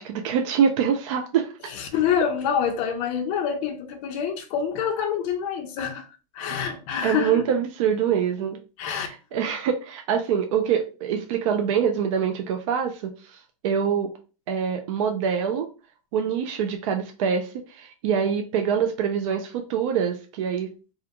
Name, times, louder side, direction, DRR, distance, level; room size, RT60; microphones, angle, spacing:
voice 1, 0.0-1.7 7.0-8.6 8.9-14.1 14.5-15.7 16.1-20.7, right 7 dB, 55° right, 0.4 m, -25 dB
voice 2, 1.8-6.0 6.3-7.4 8.8-9.1, left 7 dB, 35° left, 0.4 m, -26 dB
2.4 x 2.1 x 2.8 m
supercardioid pair, 150°, 19 cm